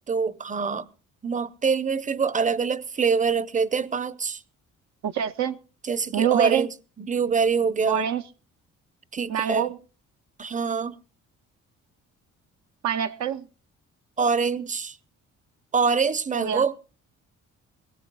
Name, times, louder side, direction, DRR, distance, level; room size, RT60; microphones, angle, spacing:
voice 1, 0.1-0.9 1.2-4.4 5.8-6.7 7.0-8.1 9.1-9.7 10.4-11.0 14.2-15.0 15.7-16.8, right 5 dB, 25° right, 0.7 m, -25 dB
voice 2, 5.0-5.6 6.1-6.7 7.9-8.2 9.3-9.8 12.8-13.4 16.3-16.6, right 9 dB, 65° right, 0.6 m, -25 dB
22.5 x 17.0 x 2.3 m
cardioid pair, 90°, 30 cm